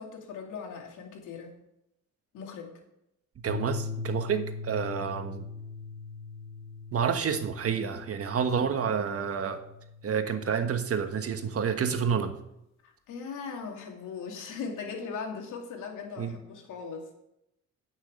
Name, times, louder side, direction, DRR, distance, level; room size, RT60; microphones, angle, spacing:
voice 1, 0.0-1.5 2.3-2.7 5.0-5.1 12.8-17.1, left 5 dB, 85° left, 2 dB, 2.6 m, -39 dB
voice 2, 3.4-5.4 6.9-9.6 10.0-12.3 16.2-16.4, right 7 dB, 50° right, 8 dB, 1.4 m, -29 dB
sound 1, 3.5-11.9, left 5 dB, 60° left, 2.3 m, -41 dB
9.9 x 6.4 x 8.7 m, 0.81 s
cardioid pair, 90°, 30 cm